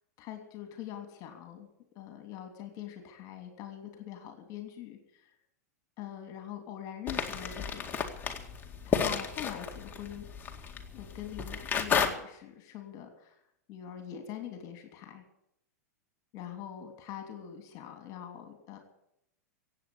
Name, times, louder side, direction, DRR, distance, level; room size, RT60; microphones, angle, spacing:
voice 1, 0.2-1.7 1.9-5.3 6.0-8.1 8.8-10.3 10.9-13.4 13.7-15.2 16.3-18.8, left 10 dB, 40° left, 6 dB, 3.0 m, -43 dB
sound 1, 7.1-12.1, left 6 dB, 20° left, 2.1 m, -32 dB
16.0 x 8.5 x 9.6 m, 0.78 s
hypercardioid pair, 115°, 9 cm